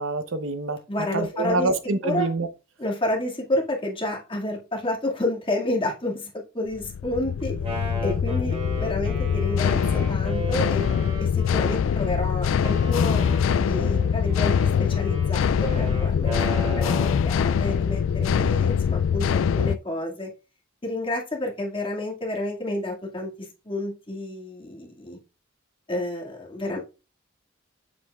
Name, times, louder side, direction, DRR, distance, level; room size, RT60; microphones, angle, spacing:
voice 1, 0.0-0.8 1.1-2.5, right 3 dB, 75° right, 0.8 m, -26 dB
voice 2, 0.9-1.7 2.0-2.3 2.8-10.9 11.2-13.2 13.6-20.3 20.8-25.2 25.9-26.8, left 1 dB, 25° left, 2.1 m, -30 dB
sound 1, 6.7-19.8, left 7 dB, 70° left, 0.3 m, -23 dB
Wind instrument woodwind instrument, 7.4-12.1 12.6-17.3, right 1 dB, 30° right, 2.5 m, -37 dB
7.5 x 7.2 x 2.4 m
head